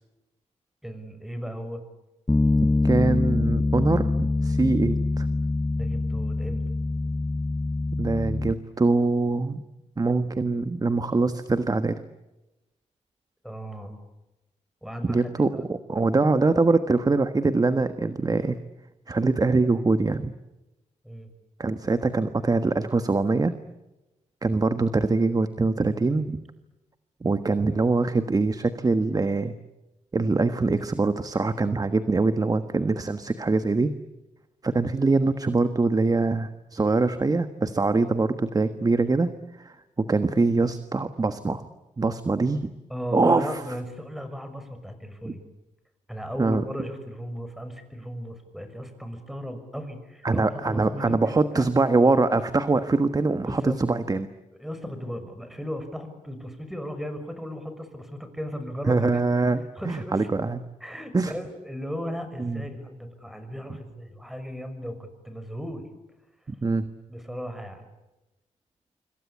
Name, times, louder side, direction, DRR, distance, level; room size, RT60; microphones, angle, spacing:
voice 1, 0.8-1.8 5.7-6.6 13.4-14.0 14.8-15.7 21.0-21.3 42.9-45.4 46.1-51.7 53.5-53.8 54.5-59.2 59.8-60.3 60.8-65.9 67.1-67.9, equal, ahead, 9 dB, 6.3 m, -36 dB
Bass guitar, 2.3-8.5, left 2 dB, 15° left, 1.0 m, -24 dB
voice 2, 2.8-5.3 8.0-9.6 10.0-12.0 15.0-18.6 19.1-20.3 21.6-23.5 24.4-26.4 27.2-29.5 30.1-33.9 34.6-39.3 39.6-41.6 42.0-42.6 43.1-43.6 45.2-45.3 46.4-46.6 50.2-54.3 58.9-60.6 61.1-61.3 62.4-62.6 66.5-66.9, right 3 dB, 30° right, 10 dB, 1.4 m, -23 dB
26.5 x 25.0 x 8.6 m, 0.99 s
cardioid pair, 85°, 13 cm